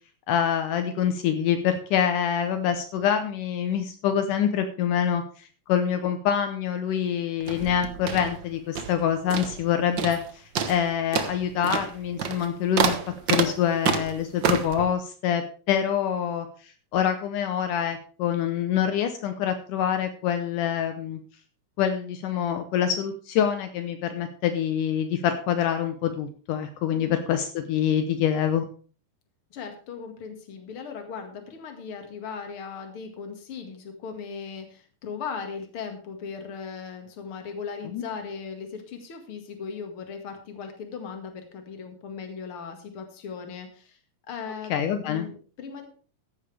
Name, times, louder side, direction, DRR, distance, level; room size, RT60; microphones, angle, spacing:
voice 1, 0.3-13.0 13.3-21.2 21.8-28.6 37.9-38.0 44.7-45.3, left 9 dB, 75° left, 8 dB, 2.4 m, -26 dB
sound 1, 7.4-9.0 9.3-9.7 10.0-10.3 10.5-14.8, right 7 dB, 85° right, 1.0 m, -28 dB
voice 2, 29.5-44.0 44.3-44.7 45.0-45.9, left 6 dB, 45° left, 5 dB, 2.5 m, -38 dB
14.5 x 10.5 x 3.4 m, 0.40 s
omnidirectional pair, 3.9 m